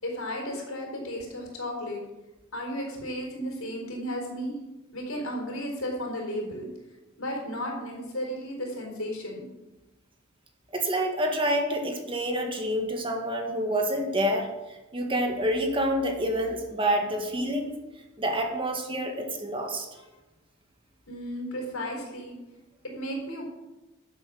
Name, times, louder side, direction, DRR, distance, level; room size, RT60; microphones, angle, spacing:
voice 1, 0.0-2.0 2.5-4.6 4.9-6.7 7.2-9.4 20.0-20.1 21.1-22.4 22.8-23.4, equal, 85° left, 0 dB, 4.1 m, -34 dB
voice 2, 10.7-17.8 18.2-19.9, equal, 25° right, 3 dB, 1.8 m, -28 dB
12.5 x 7.8 x 6.3 m, 1.0 s
head